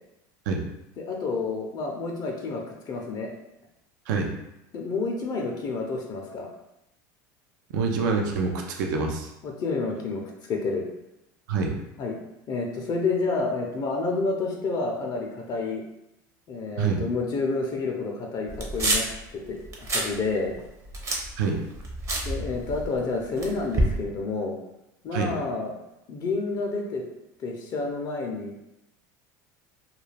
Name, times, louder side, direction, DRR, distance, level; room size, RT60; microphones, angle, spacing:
voice 1, 1.0-3.3 4.7-6.5 9.4-10.2 10.5-10.9 12.0-12.2 12.5-15.8 16.5-19.0 19.3-20.6 22.2-24.6 25.0-25.8 26.1-27.0 27.4-28.5, left 3 dB, 40° left, 1 dB, 0.5 m, -29 dB
voice 2, 7.7-9.3 11.5-11.7 16.8-17.0 21.4-21.6 25.1-25.3, right 4 dB, 80° right, 2 dB, 0.5 m, -26 dB
sound 1, 18.5-19.2 19.6-20.1 20.4-23.0 23.4-24.0, right 1 dB, 30° right, 0.6 m, -28 dB
2.3 x 2.3 x 3.2 m, 0.88 s
supercardioid pair, 100°, 10 cm